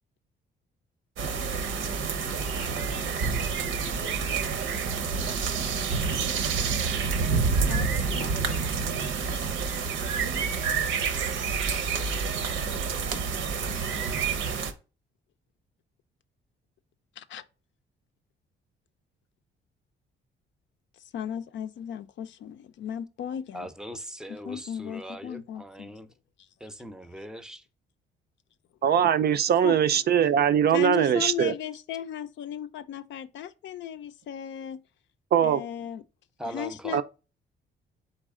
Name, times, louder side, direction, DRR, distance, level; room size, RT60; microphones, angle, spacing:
sound 1, 1.2-14.7, right 5 dB, 80° right, 0.8 m, -28 dB
voice 1, 7.6-8.8 17.2-17.4 21.1-23.7 24.3-26.0 29.6-29.8 30.7-34.8 35.4-36.0 36.5-37.0, left 9 dB, 70° left, 0.5 m, -36 dB
voice 2, 23.5-26.1 26.6-27.6 36.4-37.0, equal, 5° right, 0.6 m, -40 dB
voice 3, 28.8-31.5 35.3-35.6 36.9-37.0, right 9 dB, 55° right, 0.4 m, -21 dB
4.1 x 3.2 x 3.6 m
cardioid pair, 90°, 20 cm